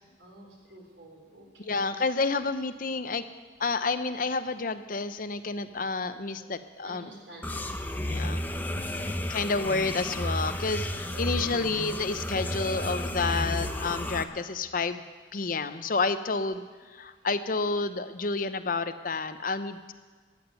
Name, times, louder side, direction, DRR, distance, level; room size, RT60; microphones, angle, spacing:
voice 1, 0.2-1.8 6.8-7.6 8.6-9.5 11.1-11.6, right 1 dB, 90° right, 0 dB, 4.1 m, -49 dB
voice 2, 1.7-3.2 3.6-7.1 8.1-8.4 9.3-15.0 15.3-16.6 16.9-19.9, left 4 dB, 50° left, 11 dB, 0.7 m, -30 dB
sound 1, 7.4-14.2, left 1 dB, 10° left, 0.7 m, -32 dB
14.0 x 8.9 x 9.1 m, 1.4 s
head